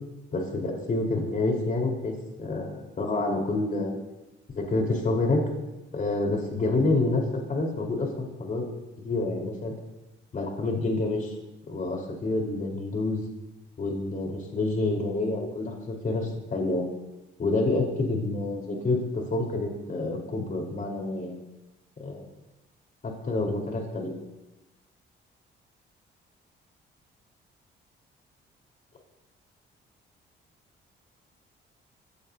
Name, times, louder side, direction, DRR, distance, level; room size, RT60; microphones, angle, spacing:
voice 1, 0.3-2.1 2.4-4.0 4.5-5.4 5.9-8.6 9.0-9.7 10.3-11.3 11.7-13.2 13.8-16.8 17.4-21.4 22.0-22.2 23.0-24.1, left 2 dB, 40° left, 1 dB, 4.2 m, -28 dB
23.5 x 16.5 x 2.8 m, 0.98 s
cardioid pair, 90°, 20 cm